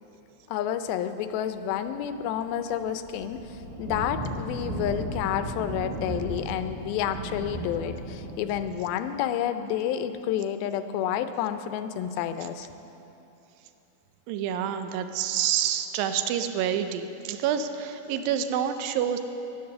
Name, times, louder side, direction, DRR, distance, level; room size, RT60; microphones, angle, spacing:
voice 1, 0.5-12.7, left 10 dB, 80° left, 10 dB, 2.2 m, -30 dB
sound 1, 2.0-2.2 2.4-8.7, right 1 dB, 60° right, 3.1 m, -35 dB
voice 2, 14.3-19.2, right 9 dB, 85° right, 8 dB, 2.0 m, -28 dB
13.5 x 11.0 x 6.7 m, 2.9 s
omnidirectional pair, 4.7 m